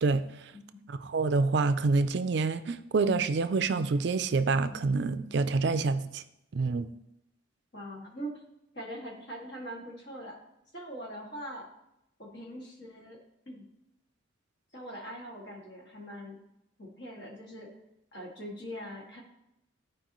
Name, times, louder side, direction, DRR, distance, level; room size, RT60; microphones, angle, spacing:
voice 1, 0.0-0.5 0.9-6.2 6.5-6.9, right 4 dB, 55° right, 11 dB, 0.4 m, -27 dB
voice 2, 0.5-0.9 7.7-8.4 8.7-10.4 10.7-11.7 12.2-13.2 13.5-13.6 14.7-16.4 16.8-17.7 18.1-19.2, equal, 55° left, -2 dB, 2.1 m, -42 dB
13.5 x 4.7 x 3.0 m, 0.83 s
head